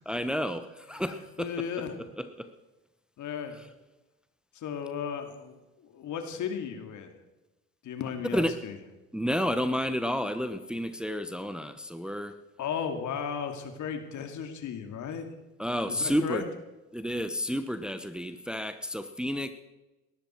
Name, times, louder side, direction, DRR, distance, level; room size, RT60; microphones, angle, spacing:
voice 1, 0.1-1.5 8.3-8.5 9.1-12.3 15.6-16.4 16.9-19.5, equal, ahead, 9 dB, 1.1 m, -30 dB
voice 2, 0.9-2.0 3.2-3.6 4.5-5.5 5.8-7.1 7.8-8.8 12.6-15.3 15.9-16.4, left 7 dB, 60° left, 6 dB, 2.6 m, -35 dB
18.5 x 13.5 x 4.6 m, 1.1 s
supercardioid pair, 70°, 33 cm